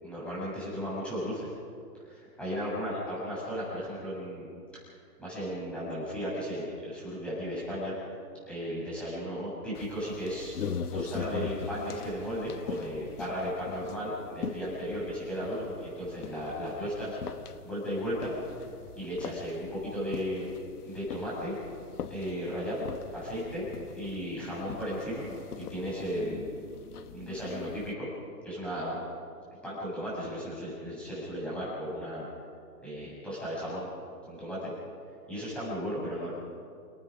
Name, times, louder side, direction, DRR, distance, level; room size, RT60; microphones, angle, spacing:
voice 1, 0.0-1.5 2.0-4.5 5.2-7.9 8.5-10.5 10.9-17.2 17.6-18.3 19.0-20.5 20.8-21.6 22.1-22.9 23.1-23.7 24.0-26.5 27.1-28.1 28.4-29.0 29.6-32.2 32.8-33.9 34.2-34.7 35.3-36.3, equal, ahead, -8 dB, 7.5 m, -35 dB
sound 1, 9.8-27.9, left 6 dB, 65° left, 1.3 m, -42 dB
29.0 x 19.0 x 5.2 m, 2.4 s
hypercardioid pair, 160°, 49 cm